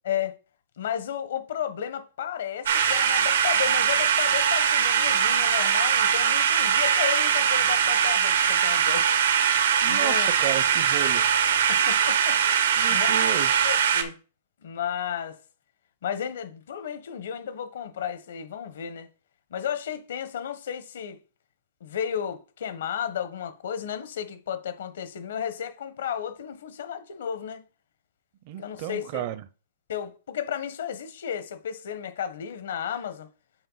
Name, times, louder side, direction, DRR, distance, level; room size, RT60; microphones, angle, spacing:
voice 1, 0.8-9.1 9.9-10.3 11.7-12.4 12.9-13.1 13.5-14.2 14.6-15.4 16.0-19.1 19.5-21.2 21.8-27.6 28.6-29.2 29.9-33.3, left 9 dB, 75° left, 1.3 m, -33 dB
sound 1, 2.7-14.0, right 8 dB, 85° right, 1.2 m, -22 dB
voice 2, 9.8-11.2 12.8-13.7 28.5-29.4, right 12 dB, 40° right, 0.6 m, -33 dB
7.8 x 4.4 x 4.1 m
hypercardioid pair, 155°, 0 cm